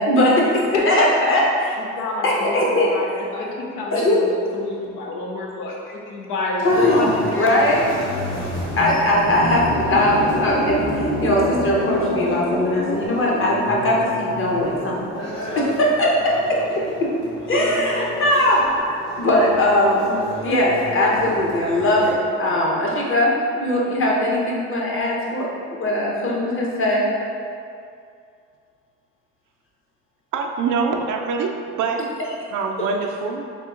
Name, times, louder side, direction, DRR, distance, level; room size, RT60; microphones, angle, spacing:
voice 1, 0.0-0.5 0.9-1.4 2.2-2.9 3.9-4.2 6.6-7.9 8.8-15.3 15.5-17.1 17.5-20.1 20.4-27.0, left 1 dB, 45° left, -3 dB, 0.9 m, -20 dB
voice 2, 0.5-1.4 1.8-7.7, left 2 dB, 90° left, -2 dB, 0.7 m, -28 dB
sound 1, 6.6-22.1, equal, 60° left, 1.5 m, -28 dB
voice 3, 30.3-32.1 32.5-33.4, right 5 dB, 75° right, 2 dB, 0.5 m, -24 dB
3.6 x 2.7 x 3.7 m, 2.4 s
cardioid pair, 90°, 30 cm